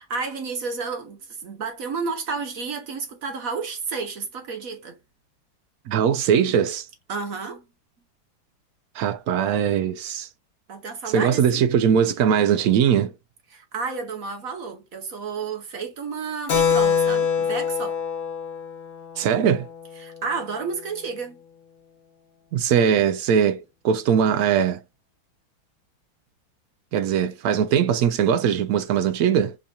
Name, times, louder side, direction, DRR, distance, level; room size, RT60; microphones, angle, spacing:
voice 1, 0.0-5.0 7.1-7.6 10.7-11.6 13.5-18.0 20.0-21.4, right 4 dB, 50° right, 1.2 m, -31 dB
voice 2, 5.9-6.9 8.9-10.3 11.1-13.1 19.2-19.7 22.5-24.8 26.9-29.6, right 8 dB, 80° right, 0.8 m, -21 dB
Keyboard (musical), 16.5-20.6, left 6 dB, 40° left, 0.8 m, -25 dB
5.4 x 2.8 x 2.3 m
omnidirectional pair, 2.1 m